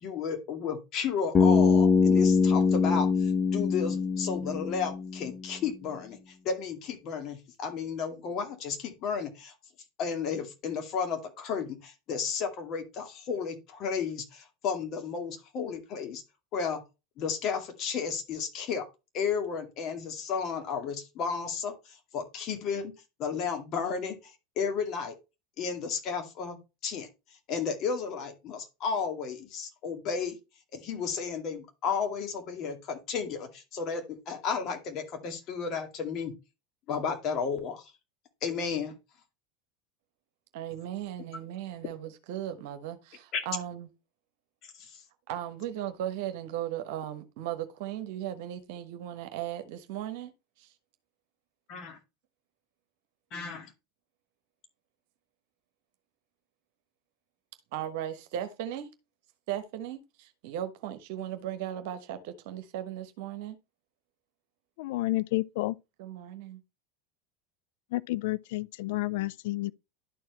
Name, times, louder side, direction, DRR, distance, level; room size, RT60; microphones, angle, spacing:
voice 1, 0.0-6.2 6.4-9.5 10.0-16.2 16.5-16.8 17.2-18.9 19.1-22.9 23.2-25.1 25.6-26.6 26.8-27.1 27.5-30.4 30.7-36.3 36.9-37.9 38.4-38.9 43.3-43.4 44.8-45.0 51.7-52.0 53.3-53.7, left 6 dB, 45° left, 2.2 m, -33 dB
Bass guitar, 1.3-5.3, left 5 dB, 25° left, 1.0 m, -23 dB
voice 2, 40.5-43.9 45.3-50.3 50.6-50.7 57.7-58.9 59.5-63.6 66.0-66.6, right 11 dB, 60° right, 1.1 m, -37 dB
voice 3, 64.8-65.8 67.9-69.7, left 18 dB, 60° left, 0.4 m, -30 dB
11.5 x 4.7 x 3.1 m
figure-of-eight pair, 80°, 0 cm